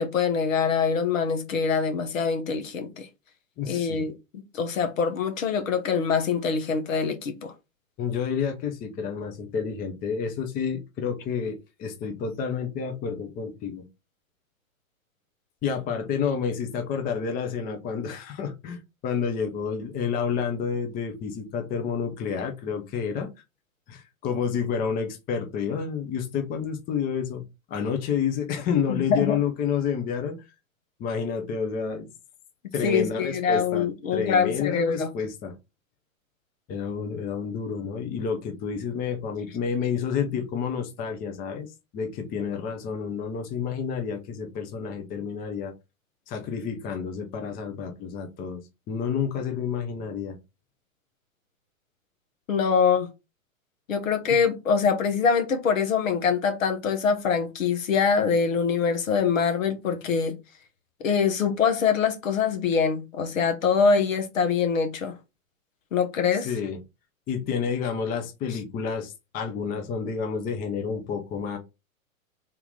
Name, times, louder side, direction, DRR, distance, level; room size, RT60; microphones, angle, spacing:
voice 1, 0.0-3.1 3.7-4.1 4.5-7.5 28.9-29.4 32.8-35.1 52.5-53.1 53.9-60.4 61.0-65.1 65.9-66.5, left 6 dB, 70° left, 1.2 m, -24 dB
voice 2, 3.6-4.1 8.0-13.9 15.6-23.3 23.9-30.5 31.0-32.1 32.7-35.6 36.7-45.7 46.3-48.6 48.9-50.4 66.3-66.8 67.3-71.6, left 6 dB, 20° left, 0.7 m, -29 dB
3.7 x 2.9 x 3.8 m
hypercardioid pair, 115°, 42 cm